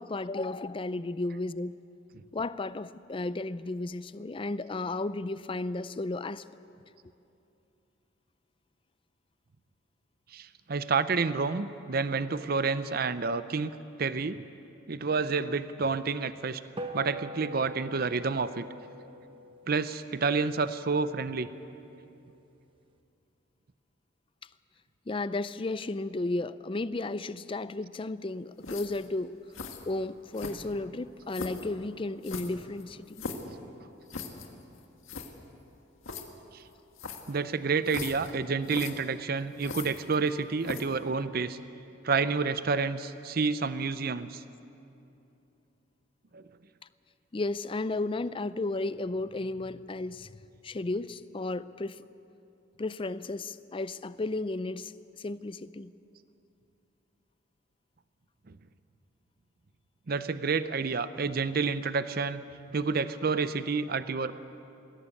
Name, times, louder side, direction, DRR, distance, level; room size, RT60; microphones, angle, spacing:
voice 1, 0.0-1.7 2.3-6.4 25.1-29.3 29.8-33.1 47.3-50.3 50.6-52.0 52.8-55.9, left 2 dB, 25° left, 15 dB, 0.4 m, -33 dB
voice 2, 10.3-13.7 14.0-14.4 14.9-16.6 16.9-18.6 19.7-21.5 36.5-36.6 37.3-41.6 42.0-44.4 46.3-46.4 58.5-58.6 60.1-62.4 62.7-64.3, right 4 dB, 50° right, 13 dB, 0.6 m, -29 dB
sound 1, 16.8-21.4, equal, 25° right, 0.9 m, -43 dB
sound 2, 28.6-29.1 29.5-29.8 30.3-30.8 31.3-31.7 32.2-33.5 34.1-34.5 34.8-34.9 35.0-35.3 36.0-36.2 37.0-37.3 37.9-38.3 38.6-38.9 39.6-40.3 40.6-41.0, left 3 dB, 85° left, 1.8 m, -39 dB
20.5 x 16.5 x 8.4 m, 2.8 s
head